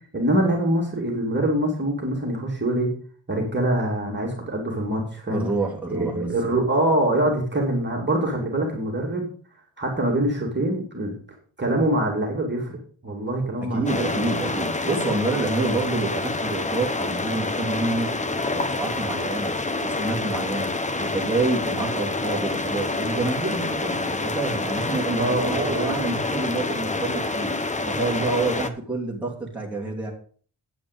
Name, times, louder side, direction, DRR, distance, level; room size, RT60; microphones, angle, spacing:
voice 1, 0.1-2.9 3.3-5.5 5.9-9.3 9.8-11.1 11.6-14.1 25.1-26.2, right 1 dB, 20° right, -2 dB, 2.5 m, -24 dB
voice 2, 5.3-6.6 13.7-18.2 18.5-27.5 27.9-30.1, right 3 dB, 5° right, -4 dB, 2.7 m, -28 dB
sound 1, 13.9-28.7, left 2 dB, 15° left, 0.6 m, -27 dB
9.4 x 9.0 x 5.2 m, 0.44 s
wide cardioid pair, 170°, 49 cm